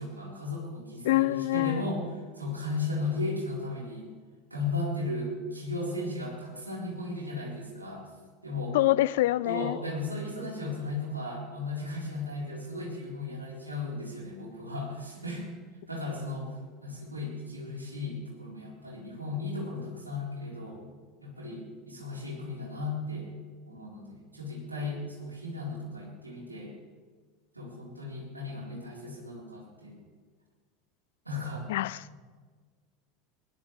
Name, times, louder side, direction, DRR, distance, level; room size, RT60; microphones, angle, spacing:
voice 1, 0.0-2.0 2.4-4.1 4.5-8.0 8.4-8.8 9.4-15.5 15.9-20.8 21.2-23.3 23.6-26.7 27.5-30.0 31.2-31.6, left 2 dB, 90° right, 4.2 m, -35 dB
voice 2, 1.0-1.8 8.7-9.8 31.7-32.0, left 17 dB, 60° left, 0.4 m, -25 dB
20.5 x 19.5 x 3.3 m
figure-of-eight pair, 75°, 0 cm